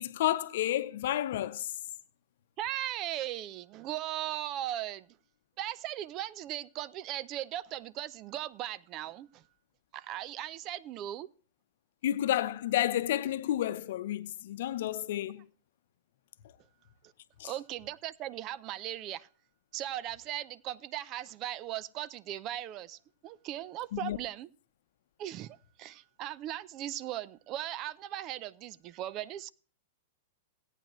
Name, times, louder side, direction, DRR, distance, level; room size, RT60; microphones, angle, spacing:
voice 1, 0.0-1.7 12.0-15.4 17.4-17.5 23.9-24.2, left 12 dB, 65° left, 0.8 m, -31 dB
voice 2, 2.6-5.1 5.6-9.4 9.9-11.3 17.4-19.3 19.7-24.5 25.2-29.5, right 13 dB, 40° right, 0.5 m, -38 dB
17.0 x 9.0 x 3.1 m
hypercardioid pair, 110°, 0 cm